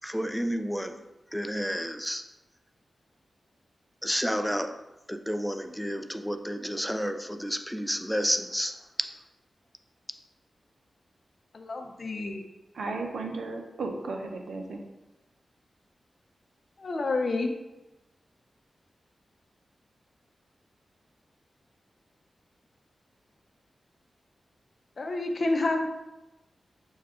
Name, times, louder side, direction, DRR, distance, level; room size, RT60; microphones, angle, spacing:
voice 1, 0.0-1.0 1.3-2.2 4.0-4.7 5.1-8.7, equal, ahead, 7 dB, 0.4 m, -30 dB
voice 2, 11.5-12.4 16.8-17.5 25.0-25.9, left 2 dB, 55° left, 3 dB, 0.6 m, -29 dB
voice 3, 12.7-14.8, right 3 dB, 85° right, 3 dB, 0.6 m, -34 dB
6.2 x 2.3 x 3.6 m, 1.0 s
cardioid pair, 75°, 0 cm